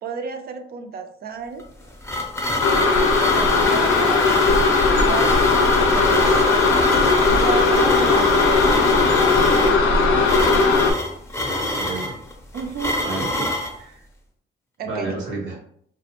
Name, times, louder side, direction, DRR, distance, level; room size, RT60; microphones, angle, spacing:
voice 1, 0.0-1.6 2.7-9.9 12.5-13.0 13.3-13.5 14.8-15.1, right 6 dB, 50° right, 6 dB, 0.4 m, -33 dB
sound 1, 1.6-13.8, left 1 dB, 15° left, 0.5 m, -26 dB
sound 2, 2.6-10.9, left 4 dB, 90° left, 0.5 m, -18 dB
voice 2, 11.5-12.2 13.0-14.0 14.8-15.5, right 3 dB, 70° right, -3 dB, 0.9 m, -31 dB
2.4 x 2.1 x 2.8 m, 0.66 s
cardioid pair, 90°, 20 cm